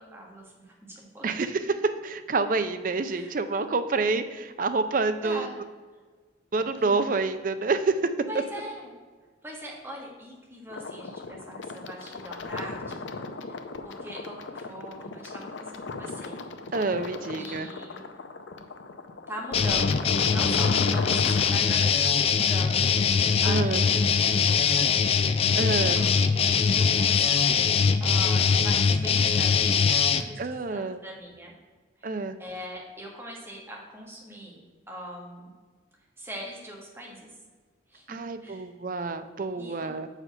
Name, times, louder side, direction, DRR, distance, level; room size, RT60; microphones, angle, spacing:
voice 1, 0.0-1.2 3.0-3.3 5.2-5.5 6.6-7.0 8.3-8.9 9.4-13.1 13.4-16.4 17.3-18.1 19.3-24.0 24.4-24.9 25.2-27.5 28.0-30.4 30.7-31.5 32.0-34.6 34.9-35.5 36.2-37.3 37.9-38.7 39.6-39.9, equal, 15° right, -2 dB, 1.4 m, -41 dB
voice 2, 1.2-5.5 6.5-8.1 16.7-17.7 23.4-23.8 25.6-26.0 30.4-31.0 32.0-32.4 38.1-40.1, right 3 dB, 45° right, 10 dB, 0.5 m, -28 dB
sound 1, 10.7-21.6, left 3 dB, 80° left, 0.6 m, -36 dB
sound 2, 19.5-30.2, left 6 dB, 30° left, 0.3 m, -22 dB
6.5 x 4.9 x 5.5 m, 1.4 s
head